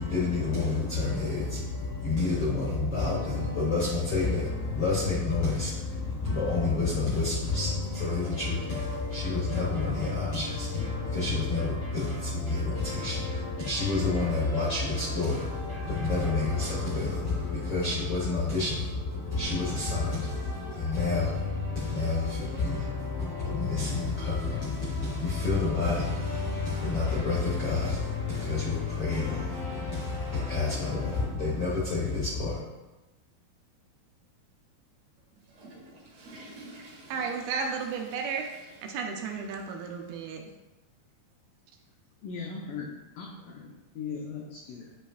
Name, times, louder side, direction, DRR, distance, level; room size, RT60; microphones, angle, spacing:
voice 1, 0.0-32.6, left 3 dB, 70° left, 1.4 m, -29 dB
sound 1, 7.9-17.0, equal, 35° right, 2.3 m, -44 dB
Water / Toilet flush, 35.2-40.2 40.5-40.6 41.3-41.4 42.7-42.8, right 1 dB, 60° right, 2.9 m, -51 dB
voice 2, 37.1-38.5 38.8-40.5, right 5 dB, 80° right, 2.3 m, -33 dB
voice 3, 42.2-45.0, left 5 dB, 90° left, 1.9 m, -39 dB
9.9 x 5.2 x 2.4 m
omnidirectional pair, 4.6 m